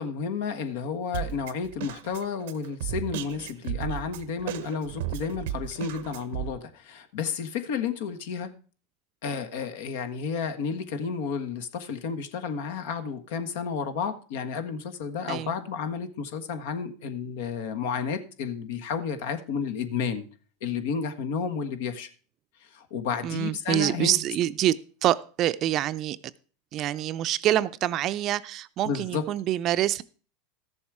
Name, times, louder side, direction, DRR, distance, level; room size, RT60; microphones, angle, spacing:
voice 1, 0.0-8.5 9.2-20.3 20.6-22.1 22.6-24.2 28.8-29.2, left 6 dB, 75° left, 8 dB, 1.4 m, -31 dB
Drum kit, 1.1-6.5, right 12 dB, 75° right, 0.8 m, -35 dB
voice 2, 23.2-26.2 26.7-30.0, right 12 dB, 45° right, 15 dB, 0.5 m, -26 dB
13.5 x 7.2 x 4.8 m, 0.39 s
supercardioid pair, 115°, 0 cm